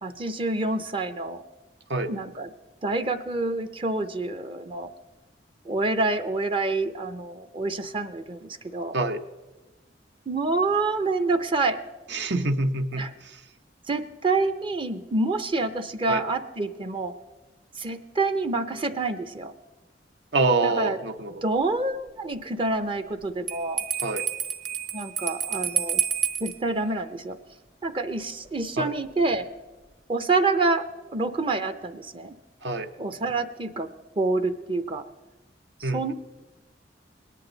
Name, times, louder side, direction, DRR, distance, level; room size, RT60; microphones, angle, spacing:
voice 1, 0.0-1.4 2.1-2.5 2.8-4.9 5.7-9.0 10.3-11.8 13.0-13.1 13.9-17.1 17.7-19.5 20.6-21.0 21.4-23.8 24.9-26.0 26.4-27.4 27.8-29.5 30.1-32.3 33.0-33.9 34.2-35.1 35.8-36.1, right 3 dB, 30° right, 10 dB, 0.6 m, -27 dB
voice 2, 12.1-13.4 16.1-16.2 20.3-21.4 24.0-24.2 28.8-28.9 32.6-32.9 35.8-36.0, right 3 dB, 70° right, 8 dB, 0.9 m, -26 dB
Bell, 23.5-26.6, right 8 dB, 45° right, 1.0 m, -29 dB
21.5 x 10.0 x 3.9 m, 1.1 s
head